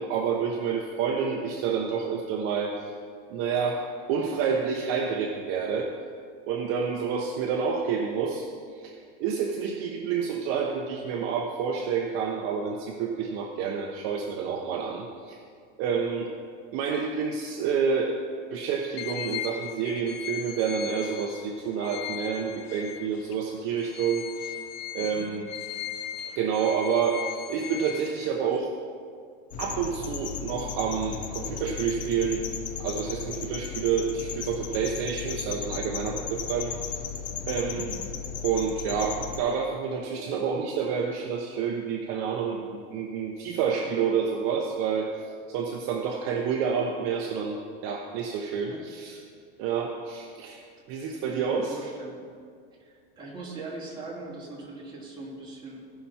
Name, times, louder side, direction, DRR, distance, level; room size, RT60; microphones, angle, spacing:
voice 1, 0.0-2.7 3.3-5.9 6.5-15.4 15.8-16.3 16.7-18.2 18.5-24.5 24.9-25.5 26.2-28.7 29.6-32.4 32.8-36.8 37.5-37.9 38.4-49.2 49.6-51.8, right 6 dB, 45° right, 1 dB, 0.9 m, -29 dB
sound 1, 19.0-23.3 23.8-28.6, left 10 dB, 85° left, 0.6 m, -38 dB
voice 2, 25.0-25.3 37.7-37.9 48.7-48.8 51.0-52.2 52.8-55.8, right 2 dB, 15° right, -5 dB, 2.5 m, -41 dB
sound 2, 29.5-39.4, left 7 dB, 25° left, 0.6 m, -35 dB
16.0 x 5.9 x 4.3 m, 2.1 s
supercardioid pair, 145°, 30 cm